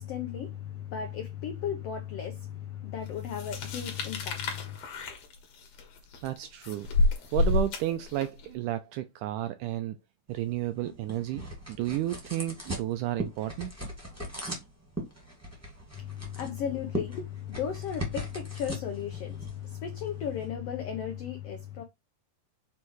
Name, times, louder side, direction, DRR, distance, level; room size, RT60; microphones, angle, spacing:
voice 1, 0.0-4.8 16.0-21.8, left 8 dB, 85° left, 1.3 m, -35 dB
sound 1, 3.3-8.5, left 3 dB, 55° left, 2.3 m, -29 dB
voice 2, 6.2-6.9 7.3-10.0 10.3-13.9, right 14 dB, 85° right, 1.8 m, -32 dB
sound 2, 10.3-20.5, right 1 dB, 5° right, 1.2 m, -40 dB
6.6 x 3.5 x 4.6 m
omnidirectional pair, 4.0 m